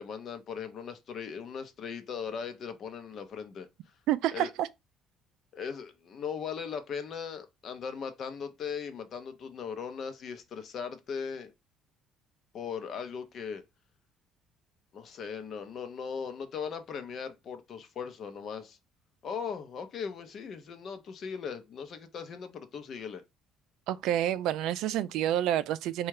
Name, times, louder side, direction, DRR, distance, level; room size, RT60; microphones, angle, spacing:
voice 1, 0.0-3.7 4.3-4.5 5.5-11.5 12.5-13.6 14.9-18.8 19.2-23.2, left 6 dB, 40° left, 0.7 m, -38 dB
voice 2, 4.1-4.7 23.9-26.1, right 12 dB, 70° right, 0.3 m, -28 dB
4.3 x 2.4 x 4.7 m
cardioid pair, 165°, 0 cm